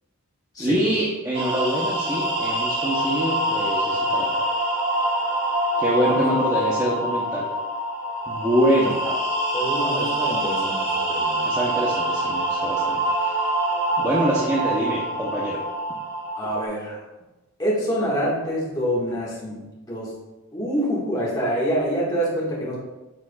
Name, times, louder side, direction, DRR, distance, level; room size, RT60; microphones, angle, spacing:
voice 1, 0.6-4.4 5.8-7.5 8.3-9.0 11.4-13.3 14.0-15.6, right 1 dB, 15° right, -6 dB, 0.8 m, -25 dB
sound 1, 1.3-16.7, right 1 dB, 50° right, 1.3 m, -25 dB
voice 2, 8.8-9.1 9.5-11.4 16.3-17.0 17.6-20.1 20.5-22.8, equal, 15° left, -6 dB, 1.7 m, -26 dB
7.5 x 6.0 x 2.3 m, 1.0 s
head